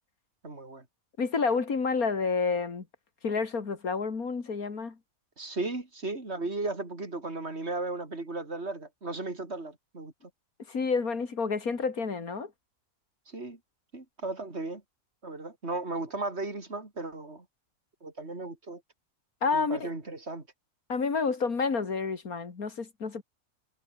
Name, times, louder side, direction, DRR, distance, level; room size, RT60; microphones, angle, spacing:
voice 1, 0.4-0.9 5.4-10.1 13.3-13.6 13.9-14.8 15.2-17.5 18.0-18.8 19.5-20.5, right 2 dB, 45° right, 4.0 m, -35 dB
voice 2, 1.2-2.9 3.2-5.0 10.7-12.5 19.4-19.9 20.9-23.2, left 4 dB, 80° left, 2.9 m, -29 dB
omnidirectional pair, 1.5 m